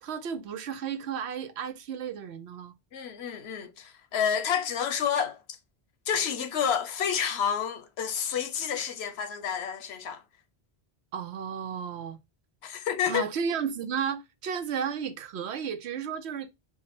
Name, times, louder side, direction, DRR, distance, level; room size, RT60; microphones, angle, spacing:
voice 1, 0.0-2.7 11.1-12.2 13.1-16.5, right 7 dB, 85° right, 0.9 m, -33 dB
voice 2, 2.9-5.4 6.1-10.2 12.6-13.2, left 8 dB, 80° left, 0.9 m, -29 dB
4.6 x 2.1 x 4.2 m
omnidirectional pair, 1.1 m